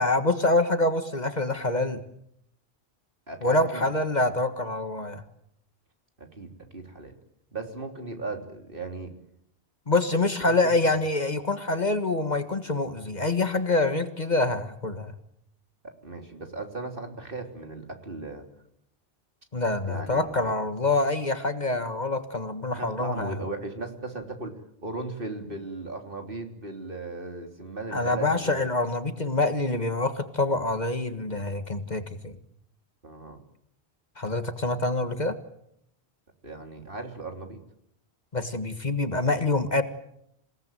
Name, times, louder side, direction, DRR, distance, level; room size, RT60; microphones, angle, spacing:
voice 1, 0.0-2.0 3.4-5.2 9.9-15.1 19.5-23.4 27.9-32.4 34.2-35.4 38.3-39.8, left 2 dB, 40° left, 9 dB, 1.7 m, -26 dB
voice 2, 3.3-3.9 6.2-7.1 7.5-9.1 10.5-10.8 16.0-18.5 19.9-20.5 22.7-28.6 33.0-33.4 36.4-37.6, right 2 dB, 55° right, 5 dB, 3.6 m, -37 dB
28.0 x 18.0 x 9.3 m, 0.75 s
omnidirectional pair, 1.1 m